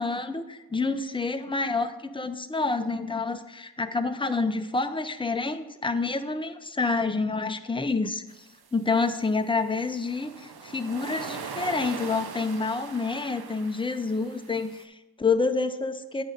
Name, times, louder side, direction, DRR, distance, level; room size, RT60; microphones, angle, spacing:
voice 1, 0.0-8.2 8.7-16.2, left 3 dB, 15° left, 8 dB, 0.6 m, -28 dB
sound 1, 8.3-8.7 9.8-14.8, right 6 dB, 65° right, 0.7 m, -40 dB
9.0 x 5.3 x 5.0 m, 1.1 s
wide cardioid pair, 60°, 40 cm